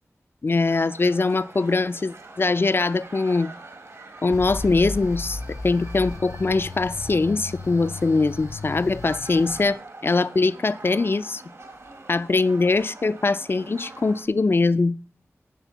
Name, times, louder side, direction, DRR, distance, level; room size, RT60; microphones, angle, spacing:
voice 1, 0.4-3.5 4.2-11.4 12.1-15.0, left 3 dB, 45° left, 0.4 m, -22 dB
sound 1, 0.7-14.3, right 2 dB, 65° right, 1.3 m, -44 dB
sound 2, 4.3-9.7, left 3 dB, 65° left, 0.7 m, -35 dB
10.0 x 3.6 x 6.9 m
wide cardioid pair, 70°, 5 cm